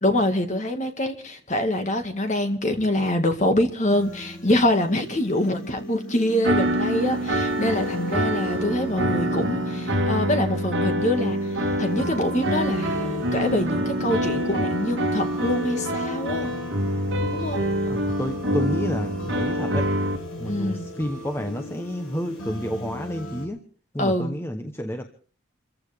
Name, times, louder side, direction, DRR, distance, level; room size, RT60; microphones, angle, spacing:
voice 1, 0.0-11.4 11.8-16.5 17.3-17.6 20.5-20.8 24.0-24.4, left 1 dB, 35° left, 6 dB, 2.0 m, -25 dB
sound 1, 3.9-23.5, left 1 dB, 85° left, 7.3 m, -36 dB
sound 2, 6.4-20.2, right 1 dB, 55° right, 3.0 m, -26 dB
voice 2, 17.9-19.9 20.4-23.6 23.9-25.1, equal, 10° left, 5 dB, 0.9 m, -30 dB
27.5 x 15.0 x 3.5 m, 0.41 s
head